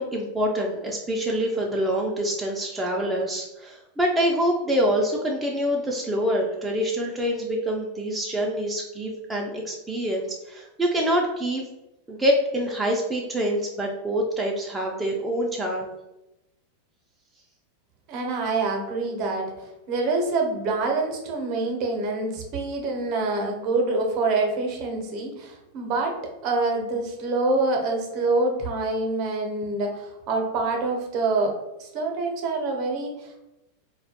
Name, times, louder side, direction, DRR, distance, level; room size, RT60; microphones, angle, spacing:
voice 1, 0.0-11.6 12.1-15.9, equal, 10° right, -2 dB, 0.3 m, -26 dB
voice 2, 18.1-19.5 19.9-26.1 26.4-33.5, right 3 dB, 50° right, 2 dB, 0.6 m, -26 dB
2.2 x 2.1 x 2.8 m, 0.93 s
supercardioid pair, 125°, 0 cm